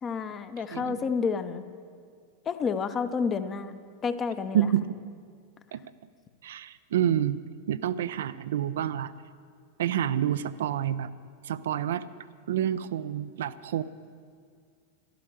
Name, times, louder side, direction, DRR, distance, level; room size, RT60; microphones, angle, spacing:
voice 1, 0.0-1.6 2.5-3.8 4.0-4.7, left 5 dB, 25° left, 10 dB, 0.8 m, -30 dB
voice 2, 4.5-5.0 5.7-5.8 6.4-7.4 7.7-9.1 9.8-11.1 11.4-12.0 12.5-13.8, right 10 dB, 60° right, 14 dB, 0.4 m, -28 dB
12.5 x 11.5 x 7.1 m, 2.1 s
figure-of-eight pair, 90°, 0 cm